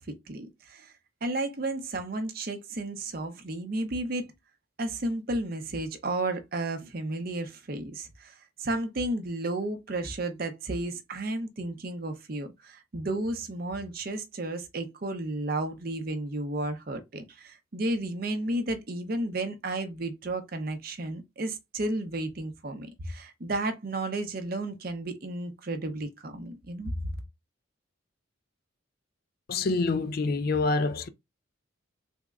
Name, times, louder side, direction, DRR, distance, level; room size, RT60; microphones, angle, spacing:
voice 1, 0.1-0.9 1.2-4.3 4.8-27.1, right 2 dB, 45° right, 0.6 m, -33 dB
voice 2, 29.5-31.1, left 3 dB, 45° left, 0.4 m, -26 dB
3.5 x 2.1 x 3.5 m
head